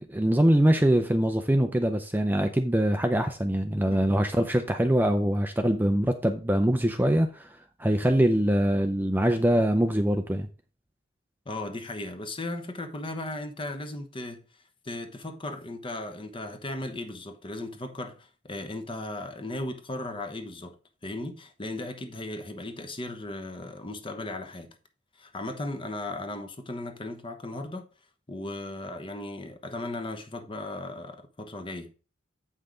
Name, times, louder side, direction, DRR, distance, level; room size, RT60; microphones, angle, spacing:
voice 1, 0.1-7.5 7.8-10.5, right 1 dB, 10° right, 0.5 m, -23 dB
voice 2, 11.5-20.8 21.0-24.8 25.2-27.9 28.3-31.9, left 2 dB, 25° left, 1.0 m, -36 dB
8.2 x 5.6 x 3.8 m
head